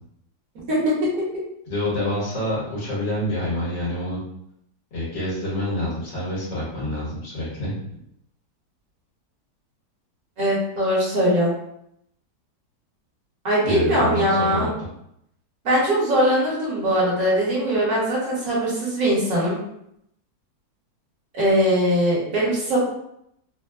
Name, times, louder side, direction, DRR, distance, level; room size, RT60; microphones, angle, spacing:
voice 1, 1.7-4.2 4.9-7.7 13.6-14.7, left 1 dB, 80° left, -7 dB, 2.0 m, -27 dB
voice 2, 10.4-11.5 13.4-14.7 15.6-19.6 21.3-22.8, equal, 55° right, -7 dB, 1.4 m, -21 dB
4.1 x 2.0 x 2.3 m, 0.76 s
omnidirectional pair, 1.8 m